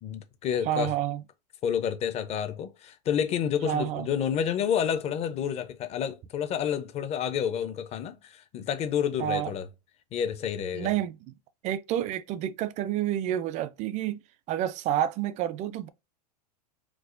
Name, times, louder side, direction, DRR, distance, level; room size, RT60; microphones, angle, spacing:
voice 1, 0.0-0.9 1.6-9.7 10.1-10.9, left 8 dB, 30° left, 0.6 m, -29 dB
voice 2, 0.6-1.2 3.6-4.1 9.2-9.5 10.7-11.3 11.6-14.2 14.5-15.9, right 11 dB, 35° right, 0.4 m, -29 dB
4.7 x 2.1 x 2.5 m
hypercardioid pair, 105°, 20 cm